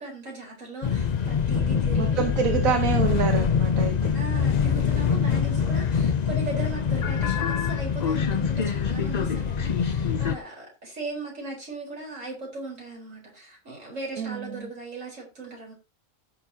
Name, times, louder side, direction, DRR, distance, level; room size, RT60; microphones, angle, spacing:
voice 1, 0.0-2.3 4.1-15.7, right 3 dB, 70° right, -1 dB, 4.7 m, -38 dB
sound 1, 0.8-10.4, left 6 dB, 45° left, 0.6 m, -24 dB
voice 2, 2.0-4.1 14.2-14.7, right 6 dB, 90° right, 4 dB, 1.6 m, -27 dB
15.5 x 7.0 x 2.8 m, 0.28 s
omnidirectional pair, 1.4 m